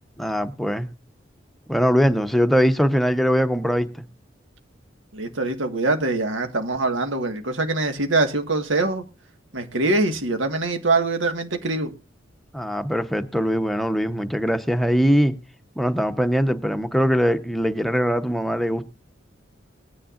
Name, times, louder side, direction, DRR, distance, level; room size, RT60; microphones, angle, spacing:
voice 1, 0.2-0.9 1.7-4.0 12.5-15.3 15.8-18.8, equal, ahead, 0.9 m, -21 dB
voice 2, 5.1-9.0 9.5-11.9, right 2 dB, 85° right, 1.7 m, -23 dB
20.5 x 9.9 x 2.5 m
head